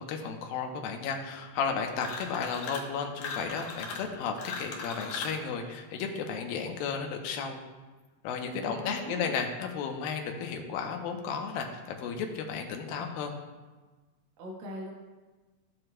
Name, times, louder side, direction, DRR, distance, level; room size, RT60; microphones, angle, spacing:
voice 1, 0.0-7.6 8.2-13.3, left 6 dB, 90° left, 3 dB, 2.6 m, -33 dB
sound 1, 2.0-2.9 3.2-5.4, left 4 dB, 70° left, 2.3 m, -39 dB
voice 2, 8.6-9.3 14.4-14.9, equal, 75° right, -1 dB, 3.0 m, -40 dB
15.0 x 7.7 x 2.2 m, 1.3 s
omnidirectional pair, 4.1 m